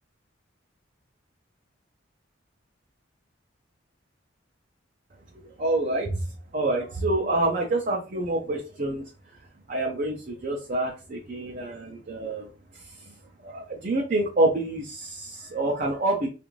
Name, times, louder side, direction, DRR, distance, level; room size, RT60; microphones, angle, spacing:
voice 1, 5.3-6.2 6.5-9.0 9.7-16.3, right 2 dB, 45° right, -1 dB, 0.5 m, -27 dB
2.5 x 2.4 x 3.0 m, 0.33 s
head